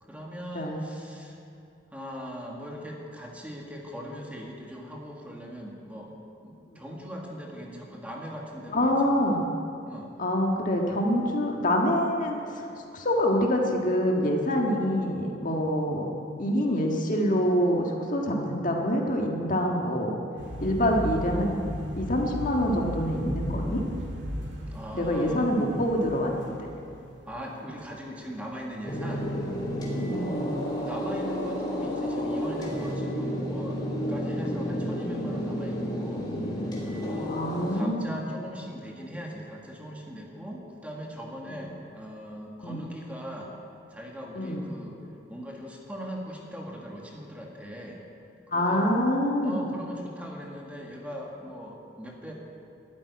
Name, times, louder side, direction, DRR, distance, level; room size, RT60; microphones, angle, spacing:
voice 1, 0.0-1.4 1.9-6.1 6.4-9.1 9.8-10.1 24.7-25.5 27.3-29.3 30.7-36.3 36.9-37.4 37.7-43.5 43.9-45.0 45.3-48.0 48.5-48.9 49.4-52.3, equal, 5° right, -1 dB, 1.8 m, -40 dB
voice 2, 8.7-9.5 10.2-12.4 12.9-16.1 16.4-20.1 20.6-21.7 22.0-23.8 24.9-26.6 29.9-30.6 37.3-38.2 42.6-42.9 44.4-44.6 48.5-49.6, equal, 45° left, 1 dB, 1.6 m, -26 dB
sound 1, 20.4-29.7 30.0-30.4 30.6-31.0 31.3-31.5, equal, 70° right, 2.4 m, -37 dB
sound 2, 28.9-37.8, equal, 20° left, 2.7 m, -31 dB
13.0 x 9.0 x 9.6 m, 2.6 s
head